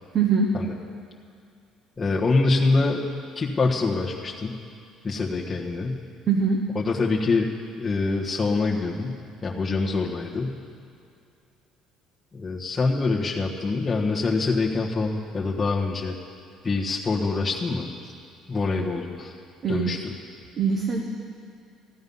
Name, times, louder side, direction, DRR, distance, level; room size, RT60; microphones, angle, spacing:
voice 1, 0.1-0.5 6.3-6.6 18.8-18.9 19.6-20.0 20.6-21.0, right 5 dB, 40° right, 0 dB, 1.1 m, -22 dB
voice 2, 2.0-3.0 3.3-4.5 5.0-6.0 6.8-10.6 12.3-16.1 16.6-17.9 18.5-19.3 19.7-20.1, left 3 dB, 20° left, -5 dB, 1.3 m, -25 dB
15.0 x 11.5 x 5.5 m, 2.4 s
cardioid pair, 145°, 0 cm